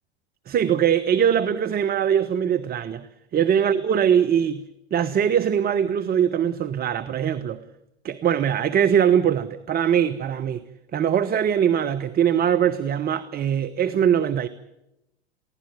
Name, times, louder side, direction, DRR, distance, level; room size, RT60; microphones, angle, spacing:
voice 1, 0.5-3.1 3.3-4.6 4.9-7.6 8.0-10.6 10.9-14.5, right 8 dB, 30° right, 1.1 m, -21 dB
23.0 x 16.5 x 9.6 m
hypercardioid pair, 90°, 32 cm